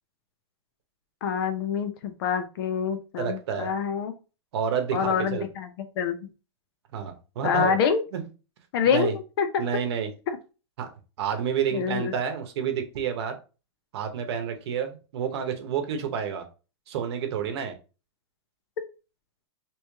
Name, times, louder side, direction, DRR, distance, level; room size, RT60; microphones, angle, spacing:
voice 1, 1.2-4.1 4.9-6.2 7.4-8.0 8.7-9.7 10.3-10.4 11.7-12.1, left 7 dB, 55° left, 9 dB, 0.6 m, -26 dB
voice 2, 3.2-3.7 4.5-5.4 6.9-7.8 8.1-8.2 8.9-9.1 9.6-10.1 10.8-10.9 11.2-13.4 13.9-16.4 16.9-17.7, right 7 dB, 60° right, 6 dB, 0.9 m, -29 dB
3.1 x 3.0 x 3.3 m, 0.33 s
supercardioid pair, 155°, 15 cm